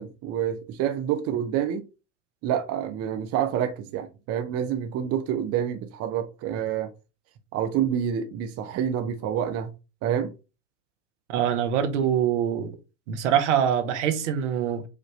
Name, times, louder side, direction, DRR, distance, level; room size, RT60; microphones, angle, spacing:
voice 1, 0.0-1.8 2.4-6.9 7.5-9.7 10.0-10.3, right 9 dB, 40° right, 0.6 m, -27 dB
voice 2, 11.3-12.7 13.1-14.9, right 9 dB, 75° right, 1.0 m, -24 dB
5.0 x 2.5 x 3.1 m
hypercardioid pair, 90°, 36 cm